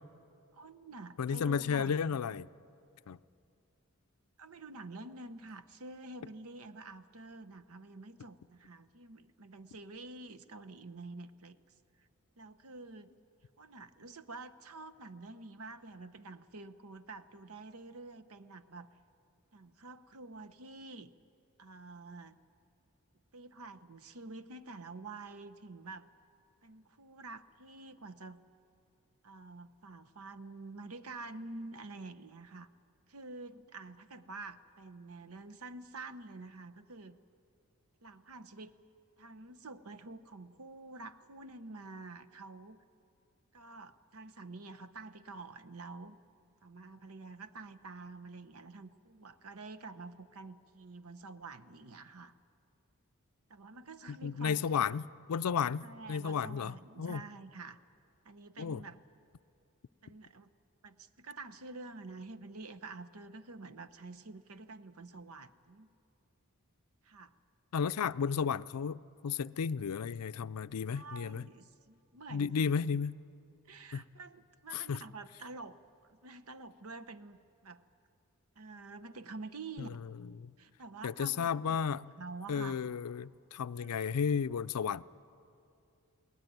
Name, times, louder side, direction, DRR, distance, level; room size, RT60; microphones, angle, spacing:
voice 1, 0.5-2.2 4.4-11.6 12.0-12.1 12.4-13.1 13.6-18.9 19.5-21.1 21.6-22.4 23.3-26.1 26.6-28.4 29.2-32.7 33.1-37.2 38.0-38.8 39.2-42.8 43.5-46.2 46.6-52.3 53.5-54.9 55.8-57.8 58.2-59.0 60.0-60.5 60.8-65.9 67.0-67.3 70.9-72.7 73.7-75.8 76.1-77.4 77.6-77.9 78.6-80.0 80.6-82.8 83.8-84.1, right 3 dB, 75° right, 12 dB, 0.9 m, -48 dB
voice 2, 1.2-2.5 3.1-3.2 54.1-55.0 55.3-55.8 56.1-57.2 58.6-58.8 67.7-71.4 72.3-73.1 73.9-74.0 74.7-75.0 79.8-79.9 80.4-80.5 81.0-82.1 82.5-85.0, left 6 dB, 90° left, 16 dB, 0.4 m, -33 dB
22.0 x 18.0 x 9.4 m, 2.6 s
head